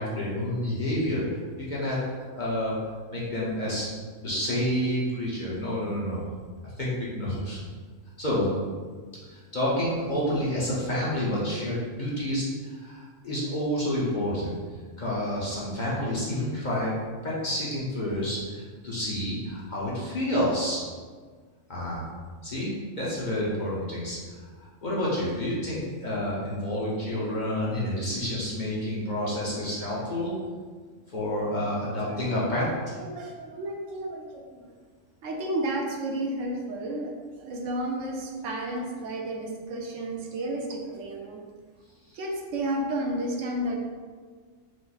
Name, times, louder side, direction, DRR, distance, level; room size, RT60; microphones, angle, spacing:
voice 1, 0.0-1.4 1.7-2.7 3.1-3.9 4.2-6.2 6.8-7.6 8.2-8.5 9.3-14.5 15.0-16.9 17.2-20.9 21.7-22.1 22.4-22.7 23.0-24.2 24.6-30.3 31.1-32.7, left 1 dB, 40° left, -6 dB, 0.8 m, -29 dB
voice 2, 33.0-34.6 35.2-37.1 37.4-41.4 42.1-43.9, right 1 dB, 75° right, 1 dB, 0.9 m, -32 dB
4.7 x 2.0 x 4.1 m, 1.5 s
omnidirectional pair, 1.4 m